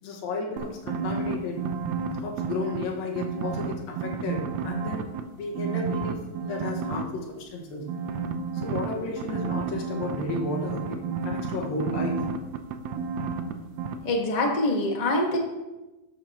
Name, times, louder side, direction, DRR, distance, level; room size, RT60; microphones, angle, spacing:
voice 1, 0.0-1.7 2.1-5.1 5.4-7.9 8.5-12.3, left 3 dB, 75° left, 0 dB, 3.4 m, -33 dB
sound 1, 0.6-2.8 3.2-5.2 5.5-7.0 7.9-13.5 13.8-13.9, right 5 dB, 80° right, 1.5 m, -31 dB
voice 2, 14.0-15.4, left 1 dB, 50° left, 0 dB, 0.4 m, -24 dB
13.0 x 10.5 x 3.0 m, 1.1 s
omnidirectional pair, 4.1 m